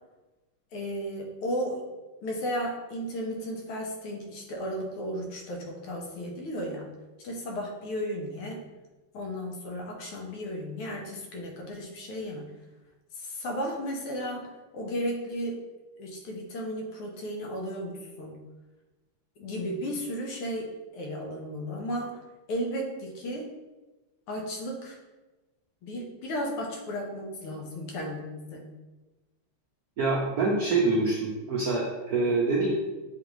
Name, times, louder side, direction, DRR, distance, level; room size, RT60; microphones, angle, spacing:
voice 1, 0.7-1.8 2.2-6.9 7.2-8.7 9.1-12.5 13.2-15.6 16.0-18.4 19.4-22.1 22.5-23.5 24.3-25.0 25.8-28.7, equal, 80° left, 0 dB, 1.7 m, -34 dB
voice 2, 30.0-32.7, right 3 dB, 80° right, -2 dB, 0.8 m, -25 dB
6.7 x 2.5 x 3.0 m, 1.1 s
omnidirectional pair, 2.4 m